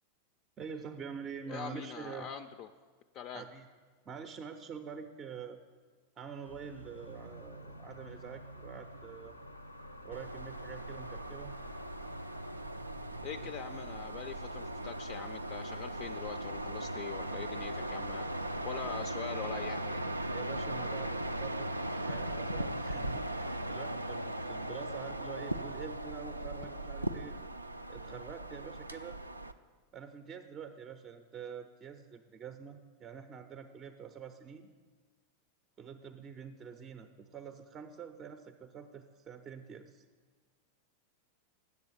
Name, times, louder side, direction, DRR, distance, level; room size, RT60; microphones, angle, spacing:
voice 1, 0.6-2.3 3.3-3.7 4.1-5.6 6.2-9.4 10.0-11.6 13.4-13.8 20.3-27.4 27.9-29.2 29.9-34.7 35.8-40.0, right 7 dB, 25° right, 8 dB, 0.5 m, -46 dB
voice 2, 1.5-2.7 3.1-3.4 13.2-20.2, left 8 dB, 40° left, 9 dB, 0.4 m, -43 dB
sound 1, 6.4-19.1, equal, 85° left, 0.6 m, -50 dB
sound 2, 10.1-29.5, right 1 dB, 85° right, 0.4 m, -38 dB
8.2 x 6.9 x 8.0 m, 1.5 s
figure-of-eight pair, 90°, 0 cm